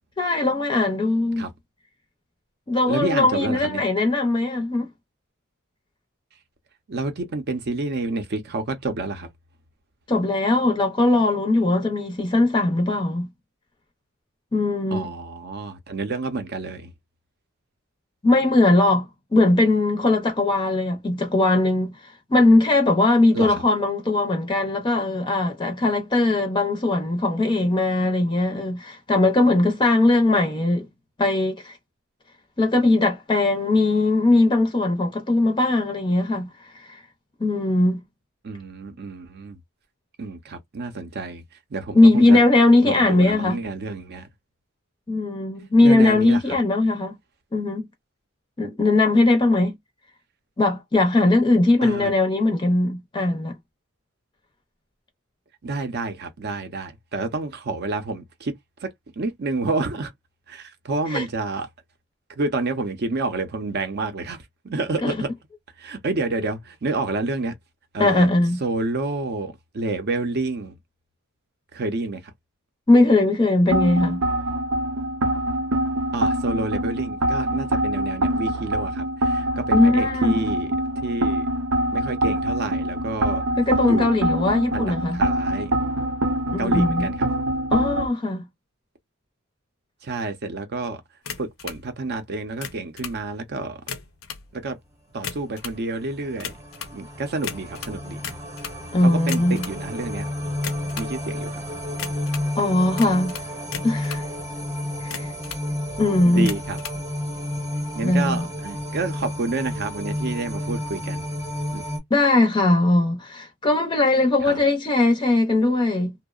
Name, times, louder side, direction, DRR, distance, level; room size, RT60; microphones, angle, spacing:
voice 1, 0.2-1.5 2.7-4.9 10.1-13.3 14.5-15.1 18.2-30.9 31.2-31.8 32.6-37.0 37.4-38.0 41.9-43.6 45.1-47.2 47.5-47.8 48.6-49.7 50.6-53.6 61.1-61.2 65.0-65.1 68.0-68.6 72.9-74.2 79.7-80.4 83.6-85.2 86.5-87.1 87.7-88.5 98.9-99.7 102.6-103.4 103.8-104.3 105.0-105.3 106.0-106.5 108.0-108.5 112.1-116.1, left 2 dB, 20° left, 0.5 m, -20 dB
voice 2, 2.9-3.8 6.9-9.3 14.9-16.9 23.3-23.6 38.4-39.6 40.2-41.4 41.7-42.4 42.8-44.3 45.8-46.6 51.8-52.1 55.6-58.5 58.8-60.1 60.5-61.7 62.4-65.3 65.8-67.5 67.9-68.3 68.6-70.8 71.7-72.2 76.1-80.7 81.0-81.5 81.9-83.4 83.8-84.1 84.7-85.7 86.6-87.3 90.0-91.0 91.4-93.8 94.5-94.8 95.1-96.5 96.9-98.2 99.0-100.2 100.9-101.6 106.2-106.8 107.7-111.3 111.7-111.8 114.4-114.6, right 3 dB, 50° right, 0.6 m, -29 dB
sound 1, 73.7-88.1, right 1 dB, 90° right, 0.7 m, -24 dB
sound 2, 91.2-91.8 92.5-93.2 93.8-94.5 95.1-95.8 96.4-97.0 97.4-98.8 99.2-99.8 100.5-101.1 102.0-102.5 103.0-104.3 104.9-105.7 106.4-107.0, left 7 dB, 75° left, 0.6 m, -35 dB
sound 3, 95.8-112.0, left 1 dB, 15° right, 0.9 m, -31 dB
2.7 x 2.0 x 2.3 m
head